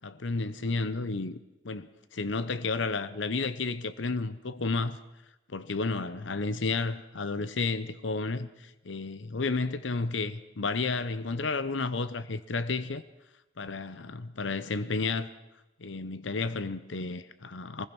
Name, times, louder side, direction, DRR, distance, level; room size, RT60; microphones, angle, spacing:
voice 1, 0.0-1.4 1.6-5.0 5.5-13.0 13.6-15.3 15.8-17.9, left 3 dB, 90° left, 0.8 m, -32 dB
23.5 x 21.0 x 6.1 m
head